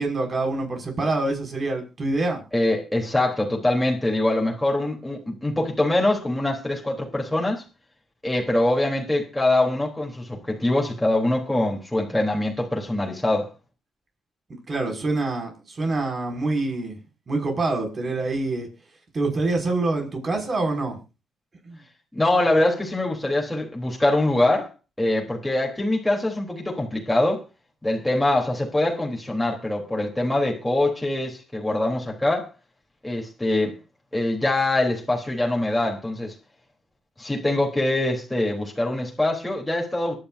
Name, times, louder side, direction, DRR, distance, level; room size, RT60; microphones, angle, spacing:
voice 1, 0.0-2.4 14.7-17.0 17.3-18.7 19.1-21.0 21.6-21.8, right 2 dB, 35° right, 6.2 m, -26 dB
voice 2, 2.5-7.6 8.2-13.5 22.1-24.7 25.0-27.4 27.8-32.5 33.0-33.8 34.1-36.3 37.2-40.2, left 1 dB, 5° left, 3.6 m, -23 dB
23.5 x 10.5 x 2.7 m
cardioid pair, 90°, 0 cm